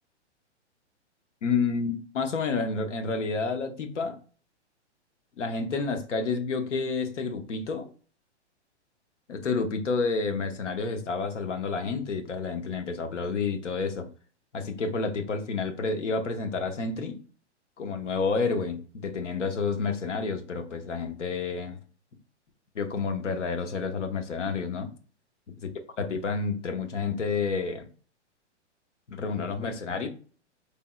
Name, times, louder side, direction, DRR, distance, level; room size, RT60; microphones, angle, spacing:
voice 1, 1.4-4.2 5.4-7.9 9.3-14.1 14.5-17.2 17.8-21.8 22.7-24.9 25.6-25.7 26.0-27.9 29.1-30.1, left 4 dB, 85° left, 1.0 m, -29 dB
4.3 x 3.6 x 2.2 m
hypercardioid pair, 130°, 35 cm